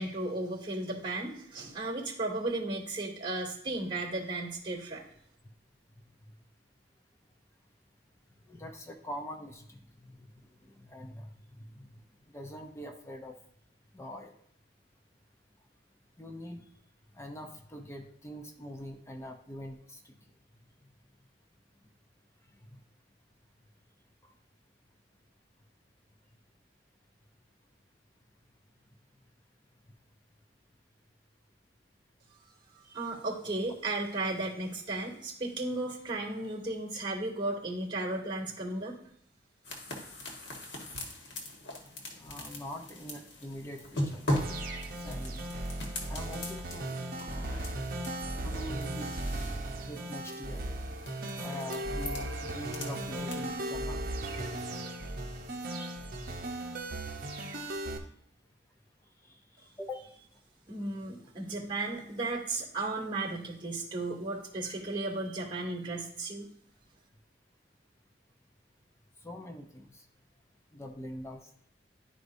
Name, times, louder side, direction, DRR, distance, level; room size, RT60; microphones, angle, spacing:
voice 1, 0.0-5.0 32.7-39.0 60.7-66.5, right 2 dB, 30° right, -2 dB, 2.5 m, -35 dB
voice 2, 8.5-12.0 12.3-13.4 13.9-14.3 16.2-16.6 17.1-20.1 20.8-20.9 22.7-22.8 24.2-24.3 36.4-36.5 42.1-44.3 44.9-45.4 46.1-46.9 47.3-47.7 48.4-49.1 49.8-50.8 51.4-54.1 59.2-60.1 64.6-64.8 69.2-70.1 70.7-71.5, left 1 dB, 15° left, 4 dB, 0.7 m, -44 dB
sound 1, 39.6-53.7, left 1 dB, 75° left, 1.5 m, -40 dB
sound 2, 44.3-58.0, right 1 dB, 55° right, 0.9 m, -37 dB
sound 3, 50.0-57.0, equal, 80° right, 0.6 m, -46 dB
11.0 x 4.7 x 2.7 m, 0.71 s
head